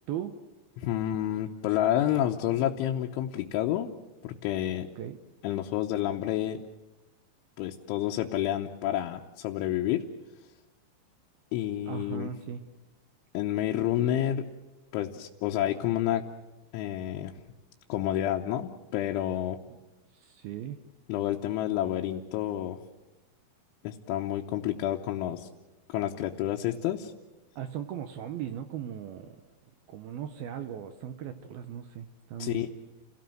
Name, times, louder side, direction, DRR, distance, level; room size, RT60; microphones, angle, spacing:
voice 1, 0.1-0.4 5.0-5.2 11.8-12.6 20.1-20.8 27.6-29.4 29.9-32.7, right 9 dB, 75° right, 8 dB, 2.3 m, -38 dB
voice 2, 0.8-3.9 4.2-4.9 5.4-6.6 7.6-10.1 11.5-12.3 13.3-14.5 14.9-16.2 16.7-17.3 17.9-19.6 21.1-22.8 23.8-25.5 25.9-27.1 32.4-32.7, left 12 dB, 90° left, 1 dB, 3.4 m, -29 dB
30.0 x 17.5 x 7.7 m, 1.1 s
omnidirectional pair, 5.3 m